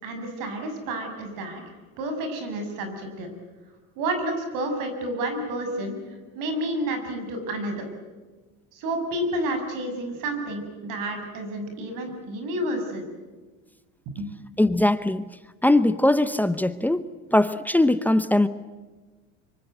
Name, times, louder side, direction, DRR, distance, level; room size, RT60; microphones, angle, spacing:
voice 1, 0.0-1.6 2.0-3.3 4.0-6.0 6.4-7.9 8.7-13.1 14.1-14.3, right 1 dB, 65° right, 6 dB, 6.9 m, -30 dB
voice 2, 14.6-15.2 15.6-17.0 17.3-18.5, left 1 dB, 5° left, 12 dB, 0.8 m, -20 dB
25.0 x 24.5 x 8.0 m, 1.3 s
supercardioid pair, 125°, 35 cm